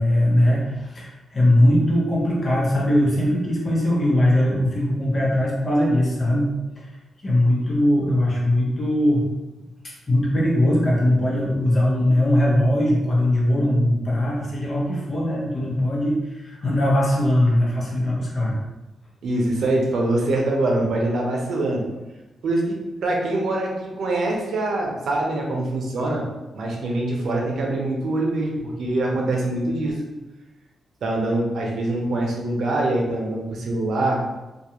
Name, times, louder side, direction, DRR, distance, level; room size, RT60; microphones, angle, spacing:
voice 1, 0.0-7.0 7.2-9.3 10.1-18.6, left 1 dB, 45° left, -5 dB, 1.0 m, -20 dB
voice 2, 19.2-21.8 22.4-22.8 23.0-26.2 26.5-29.9 31.0-34.2, right 2 dB, 75° right, -1 dB, 0.6 m, -24 dB
2.4 x 2.3 x 2.9 m, 1.1 s
cardioid pair, 60°, 0 cm